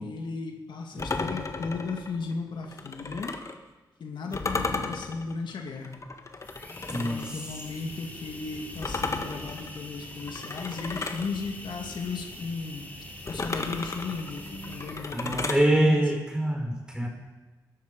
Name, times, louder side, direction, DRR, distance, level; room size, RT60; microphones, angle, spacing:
voice 1, 0.0-3.4 4.0-6.0 6.7-12.9 13.3-16.2, left 4 dB, 75° left, 3 dB, 2.2 m, -36 dB
sound 1, 1.0-3.6 4.3-7.3 8.8-11.3 13.3-15.7, left 3 dB, 40° left, 1.7 m, -34 dB
sound 2, 6.3-15.8, left 1 dB, 20° left, 3.4 m, -43 dB
voice 2, 6.9-7.4 15.1-17.1, right 1 dB, 10° right, 1 dB, 5.1 m, -25 dB
21.5 x 12.0 x 5.4 m, 1.2 s
cardioid pair, 75°, 8 cm